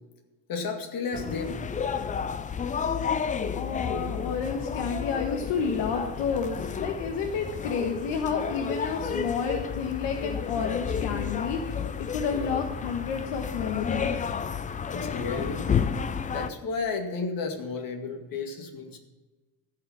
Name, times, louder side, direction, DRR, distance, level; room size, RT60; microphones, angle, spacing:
voice 1, 0.5-1.7 14.9-15.8 16.3-19.0, left 4 dB, 45° left, 4 dB, 2.2 m, -32 dB
sound 1, 1.1-16.5, left 6 dB, 20° left, 0.4 m, -31 dB
voice 2, 3.5-14.3, left 5 dB, 65° left, 2 dB, 1.4 m, -30 dB
15.5 x 5.8 x 7.4 m, 1.2 s
cardioid pair, 120°, 45 cm